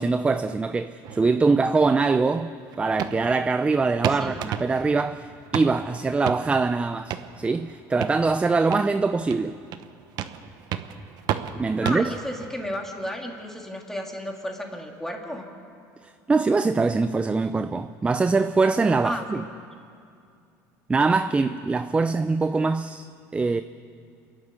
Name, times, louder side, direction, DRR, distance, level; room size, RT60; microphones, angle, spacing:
voice 1, 0.0-9.6 11.6-12.1 16.0-19.4 20.9-23.1 23.3-23.6, right 4 dB, 15° right, 0.5 m, -23 dB
sound 1, 1.0-12.6, right 10 dB, 55° right, 1.0 m, -35 dB
voice 2, 4.1-4.5 11.8-15.5 19.0-19.5, left 1 dB, 5° left, 2.8 m, -33 dB
28.5 x 11.5 x 8.4 m
supercardioid pair, 110°, 8 cm